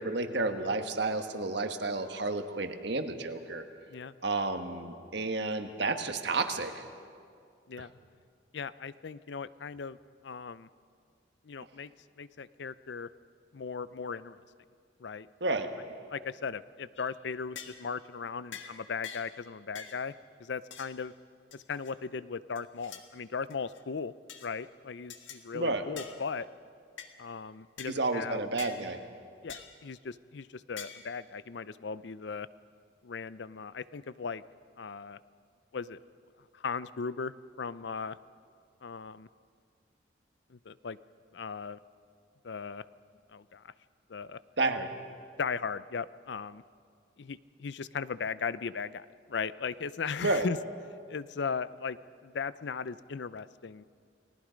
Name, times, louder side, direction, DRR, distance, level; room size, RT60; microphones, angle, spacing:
voice 1, 0.0-3.6 4.2-6.8 15.4-15.7 25.5-25.8 27.9-29.0 44.6-44.9 50.2-50.5, right 3 dB, 65° right, 7 dB, 1.4 m, -31 dB
voice 2, 8.5-10.0 10.2-10.7 11.4-11.9 12.2-13.1 13.5-14.4 15.0-15.3 16.1-20.1 20.4-21.1 21.5-24.1 24.4-26.5 27.2-28.4 29.4-32.5 33.0-34.4 34.8-35.2 35.7-36.0 36.5-38.2 38.8-39.3 40.5-41.0 41.3-41.8 42.4-42.8 43.3-43.7 44.1-44.4 45.4-46.6 47.2-50.6 51.1-53.8, left 5 dB, 70° left, 16 dB, 0.5 m, -37 dB
sound 1, 17.0-17.1 17.6-17.9 18.5-18.7 19.0-19.3 19.8-20.0 20.7-21.0 21.5-21.9 22.6-23.1 23.5-23.8 24.3-24.5 25.1-25.4 26.0-26.2 27.0-27.1 27.8-28.0 28.6-28.8 29.5-29.8 30.8-31.1, left 7 dB, 85° left, 1.6 m, -45 dB
30.0 x 19.5 x 5.2 m, 2.2 s
head